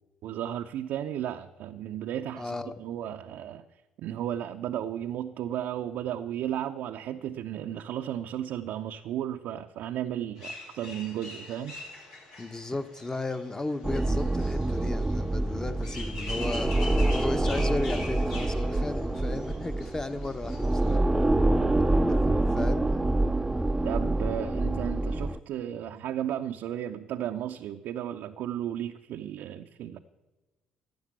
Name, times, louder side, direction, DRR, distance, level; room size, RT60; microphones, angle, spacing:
voice 1, 0.2-3.6 4.0-11.8 23.8-30.0, right 11 dB, 65° right, 0.6 m, -34 dB
voice 2, 2.3-2.8 12.4-16.7 17.1-21.2 22.1-22.8, left 2 dB, 20° left, 1.1 m, -35 dB
sound 1, 10.4-21.0, left 2 dB, 75° left, 4.7 m, -43 dB
sound 2, 13.8-25.4, right 2 dB, 10° right, 0.6 m, -26 dB
13.0 x 8.6 x 8.3 m
hypercardioid pair, 55°, 3 cm